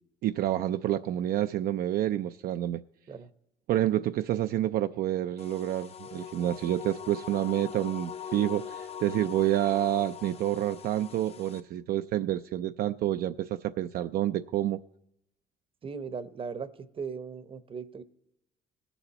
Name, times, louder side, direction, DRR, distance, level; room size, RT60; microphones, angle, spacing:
voice 1, 0.2-2.8 3.7-14.8, right 13 dB, 65° right, 0.4 m, -28 dB
sound 1, 5.4-11.6, left 8 dB, 35° left, 0.6 m, -42 dB
voice 2, 15.8-16.7 16.9-18.0, right 5 dB, 30° right, 0.7 m, -38 dB
19.5 x 7.0 x 4.1 m
cardioid pair, 110°, 17 cm